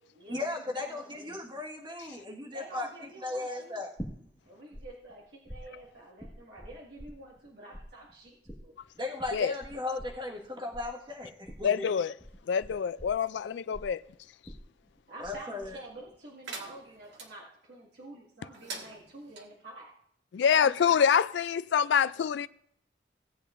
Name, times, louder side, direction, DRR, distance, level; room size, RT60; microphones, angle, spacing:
voice 1, 0.3-2.9 3.2-3.9 9.0-11.9 15.2-15.8, left 2 dB, 25° right, 1.6 m, -36 dB
voice 2, 0.8-1.3 2.5-3.8 4.4-8.8 15.1-19.9 20.5-20.7, right 2 dB, 65° right, 1.9 m, -48 dB
sound 1, 4.0-4.8 5.1-7.5 7.7-15.4 15.6-16.1, equal, ahead, 1.6 m, -45 dB
voice 3, 11.6-12.1 12.5-14.0 20.3-22.5, left 7 dB, 75° left, 0.3 m, -26 dB
sound 2, 16.4-17.3 18.5-19.5, right 4 dB, 80° right, 1.7 m, -43 dB
17.0 x 8.4 x 2.6 m
head